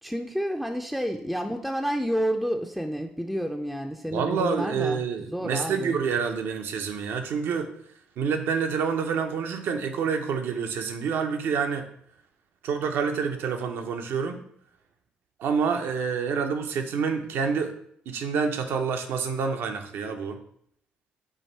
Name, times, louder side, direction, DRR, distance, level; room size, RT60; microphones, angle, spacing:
voice 1, 0.0-6.0, equal, ahead, 3 dB, 0.4 m, -30 dB
voice 2, 4.1-7.7 8.2-11.9 12.6-14.4 15.4-17.7 18.1-20.4, right 6 dB, 70° right, 6 dB, 0.6 m, -27 dB
4.6 x 2.6 x 4.3 m, 0.67 s
supercardioid pair, 60°, 4 cm